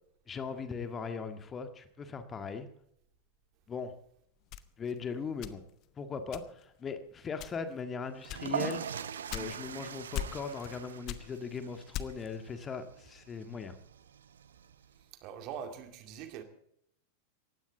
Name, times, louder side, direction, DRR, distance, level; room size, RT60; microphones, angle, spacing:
voice 1, 0.3-2.7 3.7-3.9 4.8-5.6 6.0-9.0 9.3-13.8, left 5 dB, 20° left, 1.7 m, -39 dB
sound 1, 4.5-5.9 6.3-6.8 7.3-7.8 8.3-9.8 10.1-10.8 11.0-12.4, left 12 dB, 40° left, 1.1 m, -40 dB
sound 2, 8.2-15.0, right 8 dB, 65° right, 1.0 m, -42 dB
voice 2, 15.2-16.4, right 8 dB, 40° right, 2.4 m, -42 dB
19.0 x 15.5 x 4.0 m
figure-of-eight pair, 90°, 0 cm